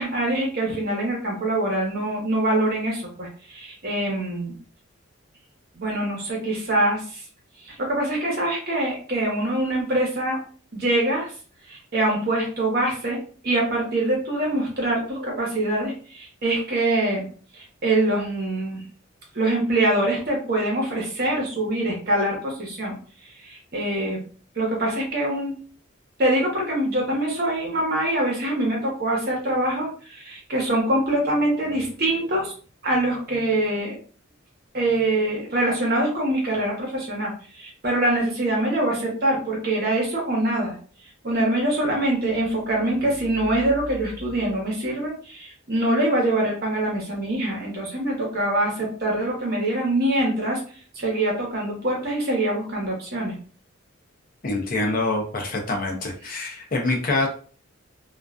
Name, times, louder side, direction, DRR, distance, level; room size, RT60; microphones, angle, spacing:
voice 1, 0.0-4.5 5.7-7.2 7.6-10.4 10.7-11.3 11.7-13.2 13.4-17.3 17.5-18.8 19.3-23.0 23.4-24.2 24.5-25.5 26.2-32.5 32.8-34.0 34.7-40.8 41.2-50.6 50.9-53.3, right 1 dB, 45° right, -1 dB, 0.9 m, -24 dB
voice 2, 54.4-57.3, left 2 dB, 40° left, 1 dB, 0.5 m, -25 dB
2.4 x 2.2 x 2.4 m, 0.41 s
head